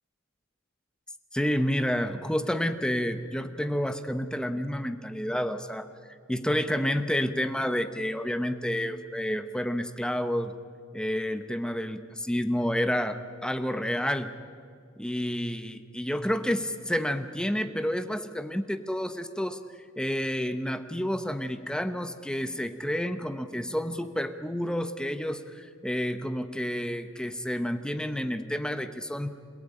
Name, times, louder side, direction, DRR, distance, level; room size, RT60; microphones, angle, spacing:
voice 1, 1.3-5.9 6.3-10.5 10.9-14.3 15.0-19.6 20.0-29.3, equal, 5° left, 10 dB, 0.8 m, -29 dB
27.5 x 17.0 x 9.1 m, 2.2 s
head